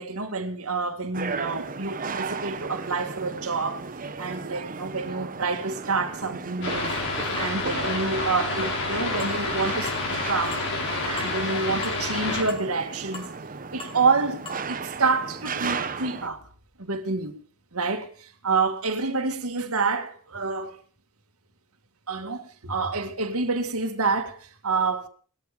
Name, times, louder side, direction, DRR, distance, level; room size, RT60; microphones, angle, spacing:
voice 1, 0.0-3.8 4.2-10.6 11.0-13.3 13.7-14.4 14.7-16.4 16.8-17.3 17.7-20.8 22.1-25.1, right 4 dB, 80° right, 2.3 m, -28 dB
sound 1, 1.1-16.3, right 4 dB, 40° right, 1.1 m, -35 dB
sound 2, 6.6-12.4, left 2 dB, 60° left, 7.0 m, -29 dB
sound 3, 9.2-9.4 9.8-10.0 10.5-10.7 11.2-11.3 11.8-12.0 12.5-12.7 13.1-13.3 13.8-14.0 14.5-14.6, left 2 dB, 25° left, 4.7 m, -39 dB
20.0 x 13.5 x 5.3 m
head